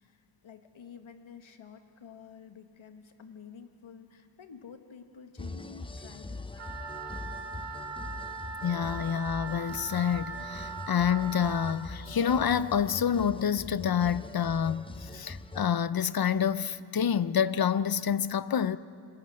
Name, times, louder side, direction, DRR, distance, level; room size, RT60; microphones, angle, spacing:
voice 1, 0.0-6.4, left 6 dB, 70° left, 1.8 m, -50 dB
sound 1, 5.4-15.7, left 2 dB, 10° left, 0.6 m, -43 dB
Wind instrument woodwind instrument, 6.5-11.8, right 5 dB, 60° right, 2.0 m, -40 dB
voice 2, 8.6-18.8, left 8 dB, 45° left, 0.7 m, -28 dB
28.0 x 20.0 x 6.5 m
cardioid pair, 65°, 49 cm